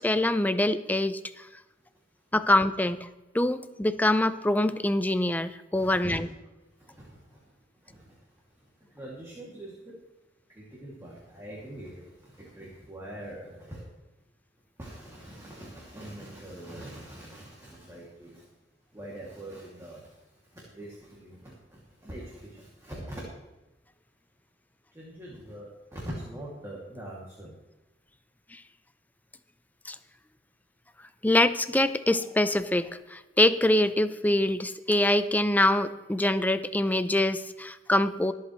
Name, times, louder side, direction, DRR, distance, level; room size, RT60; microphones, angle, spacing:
voice 1, 0.0-1.5 2.3-3.1 3.3-6.3 28.5-28.6 29.8-29.9 31.2-38.3, left 1 dB, 10° left, 11 dB, 0.5 m, -24 dB
voice 2, 5.7-6.3 6.8-7.4 7.8-8.2 8.9-9.8 10.5-13.9 14.8-18.4 18.9-20.1 20.5-23.3 24.9-27.5, right 1 dB, 15° right, -4 dB, 2.5 m, -43 dB
24.0 x 8.1 x 3.2 m, 1.1 s
head